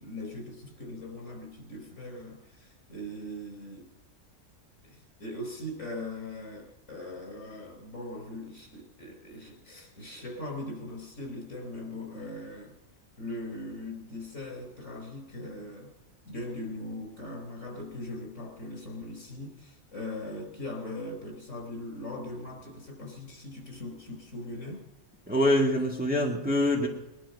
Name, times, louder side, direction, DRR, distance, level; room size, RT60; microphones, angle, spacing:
voice 1, 0.0-3.9 4.8-12.7 13.2-15.9 16.2-24.8, left 1 dB, 55° left, 2 dB, 4.7 m, -40 dB
voice 2, 25.3-26.9, left 1 dB, 5° right, -1 dB, 1.8 m, -24 dB
21.5 x 11.5 x 5.4 m, 1.0 s
omnidirectional pair, 1.5 m